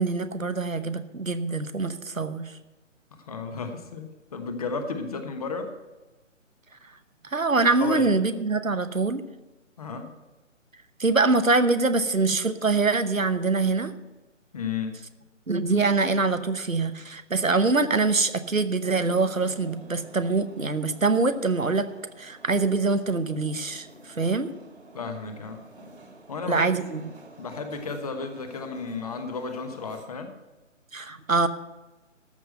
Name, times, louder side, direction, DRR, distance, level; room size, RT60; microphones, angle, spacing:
voice 1, 0.0-2.5 7.3-9.2 11.0-13.9 15.5-21.9 22.2-23.9 24.2-24.5 26.5-27.0 30.9-31.5, right 3 dB, 90° right, 11 dB, 1.0 m, -24 dB
voice 2, 3.1-5.7 7.8-8.2 9.8-10.1 14.5-15.0 24.9-25.6 26.3-26.9 27.4-30.3, left 4 dB, 30° left, 7 dB, 1.1 m, -33 dB
sound 1, 18.8-30.1, right 1 dB, 55° right, 2.3 m, -50 dB
13.5 x 6.0 x 7.7 m, 1.1 s
figure-of-eight pair, 145°, 39 cm